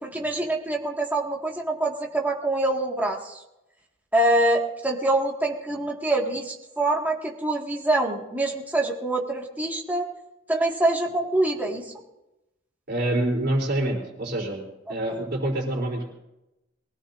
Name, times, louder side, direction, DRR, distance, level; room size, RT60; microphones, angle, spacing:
voice 1, 0.0-3.4 4.1-10.1 10.5-11.9 15.1-15.2, right 1 dB, 10° right, -1 dB, 1.9 m, -25 dB
voice 2, 12.9-14.6 14.9-16.1, right 1 dB, 55° right, 0 dB, 3.7 m, -26 dB
23.0 x 17.5 x 2.7 m, 0.93 s
head